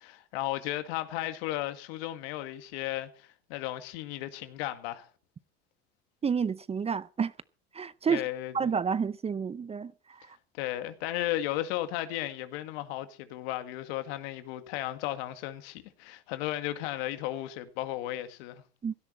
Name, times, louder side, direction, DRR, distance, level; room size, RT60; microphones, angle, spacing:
voice 1, 0.0-5.1 8.1-8.7 10.6-18.6, left 14 dB, 75° left, 2.0 m, -35 dB
voice 2, 6.2-7.3 7.7-8.3 8.5-10.2 18.8-18.9, right 6 dB, 20° right, 0.6 m, -30 dB
16.5 x 12.5 x 4.4 m
supercardioid pair, 105°, 31 cm